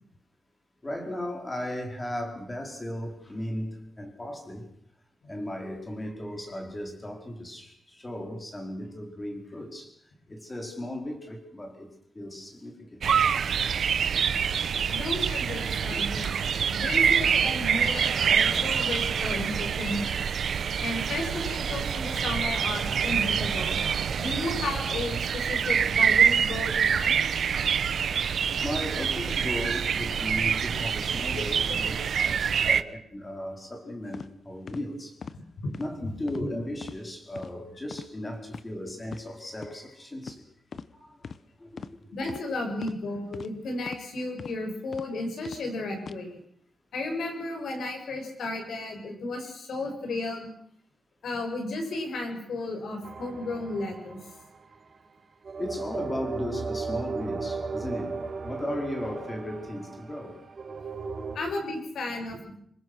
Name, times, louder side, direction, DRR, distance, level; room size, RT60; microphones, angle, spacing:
voice 1, 0.8-4.7 5.2-9.9 10.3-13.1 13.9-14.0 15.9-16.0 28.6-35.2 35.8-40.5 40.9-41.3 41.6-41.7 55.6-60.4 61.2-61.3, left 1 dB, 15° left, 4 dB, 4.7 m, -36 dB
sound 1, 13.0-32.8, right 7 dB, 65° right, 0.9 m, -26 dB
voice 2, 14.9-16.4 16.7-20.0 20.8-23.8 24.2-27.3 31.3-31.4 32.6-32.8 35.6-35.7 42.1-46.4 46.9-50.5 51.2-54.2 61.3-62.5, left 2 dB, 80° left, 4 dB, 7.2 m, -33 dB
sound 2, 34.1-34.3 34.7-34.8 35.2-35.4 35.7-35.9 36.3-36.5 36.8-37.0 37.3-37.5 37.9-38.1 38.5-38.6 39.0-39.2 39.6-39.7 40.2-40.4 40.7-40.9 41.2-41.4 41.8-41.9 42.3-42.4 42.8-43.0 43.3-43.5 43.8-44.0 44.4-44.6 44.9-45.1 45.4-45.6 46.0-46.2, left 5 dB, 45° left, 1.0 m, -40 dB
sound 3, 53.0-54.7 55.4-61.4, right 4 dB, 40° right, 3.1 m, -36 dB
26.5 x 23.0 x 6.4 m, 0.68 s
wide cardioid pair, 175°, 0 cm